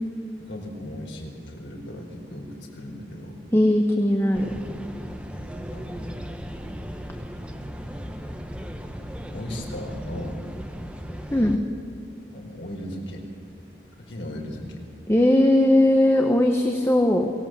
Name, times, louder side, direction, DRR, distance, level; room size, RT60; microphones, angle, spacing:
voice 1, 0.4-3.4 5.7-6.1 9.3-10.4 12.3-13.2 14.0-14.8, left 1 dB, 90° left, 0 dB, 4.4 m, -37 dB
voice 2, 3.5-4.5 11.3-11.6 15.1-17.3, left 1 dB, 15° left, 3 dB, 1.1 m, -19 dB
sound 1, 4.3-11.6, equal, 5° right, 1.2 m, -36 dB
23.5 x 18.5 x 7.5 m, 2.4 s
head